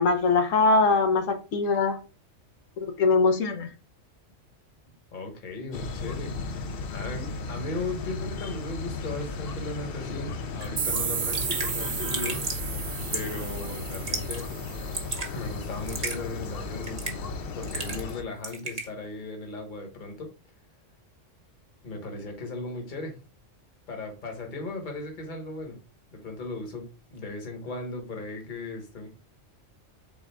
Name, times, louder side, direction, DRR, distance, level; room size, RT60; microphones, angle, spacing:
voice 1, 0.0-2.0 2.8-3.7, left 3 dB, 90° left, 1.1 m, -22 dB
voice 2, 5.1-12.4 13.1-14.5 15.3-17.2 17.5-20.3 21.8-23.2 23.9-25.8 26.1-29.1, left 2 dB, 40° left, 1.2 m, -37 dB
sound 1, 5.7-18.2, left 4 dB, 60° left, 0.7 m, -35 dB
Raindrop / Drip, 10.6-10.7 11.0-11.1 11.3-11.7 12.1-12.6 13.1-13.4 13.9-14.4 14.7-15.3 15.9-16.2 16.8-17.3 17.6-18.1 18.4-18.9, right 3 dB, 35° right, 1.0 m, -33 dB
sound 2, 10.8-15.4, right 7 dB, 55° right, 0.6 m, -33 dB
4.2 x 3.6 x 3.3 m
omnidirectional pair, 1.3 m